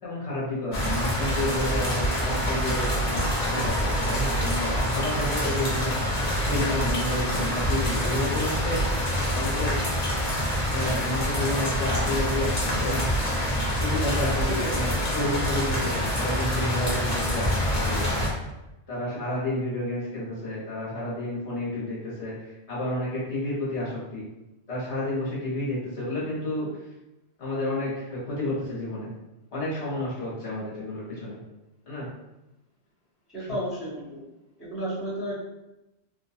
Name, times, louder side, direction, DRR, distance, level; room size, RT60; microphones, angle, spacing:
voice 1, 0.0-5.9 6.5-8.8 9.3-9.7 10.7-13.0 13.8-18.1 18.9-24.2 24.7-26.8 27.4-29.1 29.5-31.4 31.8-32.1 33.4-33.5, left 1 dB, 75° left, -7 dB, 1.3 m, -30 dB
sound 1, 0.7-18.3, equal, 40° left, 0.8 m, -26 dB
voice 2, 14.5-15.0 33.3-34.2 34.6-35.4, equal, ahead, -11 dB, 1.0 m, -32 dB
2.9 x 2.2 x 2.6 m, 0.96 s
omnidirectional pair, 1.2 m